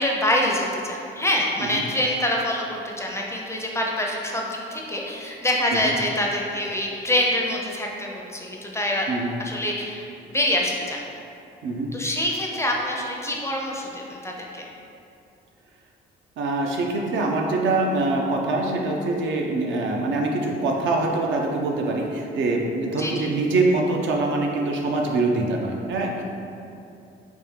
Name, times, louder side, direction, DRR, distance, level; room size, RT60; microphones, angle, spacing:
voice 1, 0.0-9.1 9.4-11.0 11.9-14.7 23.0-23.3, left 1 dB, 15° left, -1 dB, 0.4 m, -25 dB
voice 2, 16.4-26.2, right 2 dB, 70° right, 0 dB, 0.5 m, -24 dB
3.5 x 2.4 x 3.1 m, 2.7 s
cardioid pair, 90°, 20 cm